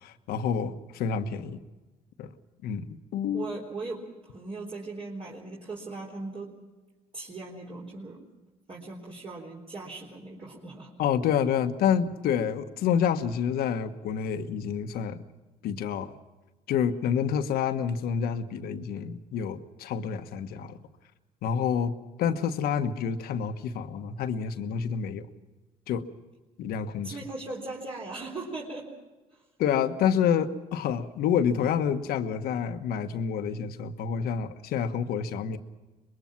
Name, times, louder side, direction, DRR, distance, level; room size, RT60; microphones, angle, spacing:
voice 1, 0.0-1.6 2.2-2.3 2.6-3.5 11.0-15.2 15.6-16.1 16.7-20.8 21.4-25.3 25.9-26.0 26.6-27.1 29.6-35.6, left 7 dB, 80° left, 8 dB, 1.2 m, -28 dB
voice 2, 3.3-6.5 7.1-8.2 8.7-10.9 27.0-28.9 29.3-29.4, right 3 dB, 40° right, -4 dB, 4.0 m, -39 dB
24.5 x 21.5 x 6.0 m, 1.2 s
supercardioid pair, 80°, 15 cm